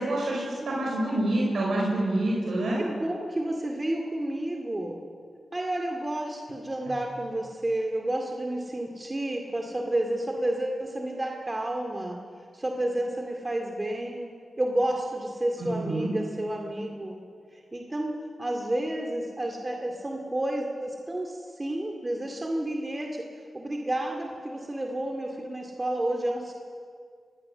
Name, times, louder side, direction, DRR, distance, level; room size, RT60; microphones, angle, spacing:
voice 1, 0.0-2.8 15.6-16.1, right 1 dB, 80° right, -4 dB, 5.0 m, -27 dB
voice 2, 2.8-5.0 5.5-12.2 12.5-14.3 14.6-17.2 17.5-18.1 18.4-23.2 23.5-26.5, right 1 dB, 25° right, 2 dB, 2.3 m, -30 dB
23.0 x 17.5 x 6.8 m, 2.2 s
cardioid pair, 55°, 0 cm